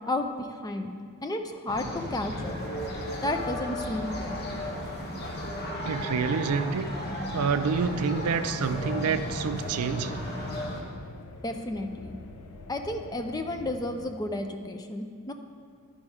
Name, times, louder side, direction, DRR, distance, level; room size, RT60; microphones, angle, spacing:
voice 1, 0.1-0.9 1.2-2.6 3.2-4.5 11.4-12.2 12.7-15.3, left 1 dB, 15° left, 5 dB, 0.4 m, -32 dB
sound 1, 1.7-10.8, left 1 dB, 45° left, 1.0 m, -34 dB
voice 2, 5.8-6.9 7.1-10.2, right 5 dB, 80° right, 11 dB, 0.4 m, -28 dB
sound 2, 9.2-14.1, left 3 dB, 85° left, 0.6 m, -45 dB
11.0 x 5.3 x 4.8 m, 2.1 s
head